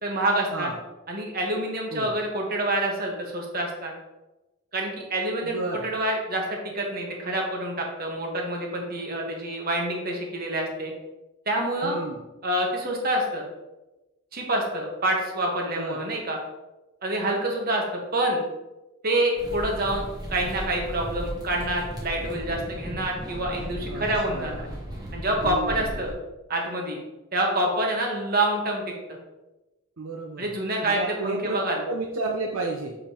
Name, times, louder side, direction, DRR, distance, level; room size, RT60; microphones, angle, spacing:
voice 1, 0.0-0.7 1.1-3.9 4.7-10.9 11.5-12.0 12.4-13.4 14.3-16.4 17.0-18.4 19.0-20.0 20.3-24.7 25.1-26.1 26.5-27.0 27.3-28.8 29.1-29.2 30.4-31.8, right 1 dB, 45° right, 0 dB, 1.3 m, -27 dB
voice 2, 5.4-5.9 11.8-12.2 15.7-16.0 23.9-24.8 25.4-25.9 30.0-31.6 31.8-33.0, right 2 dB, 75° right, 1 dB, 0.6 m, -32 dB
sound 1, 19.4-26.1, equal, 20° right, 1.0 m, -36 dB
6.7 x 5.1 x 2.9 m, 1.0 s
head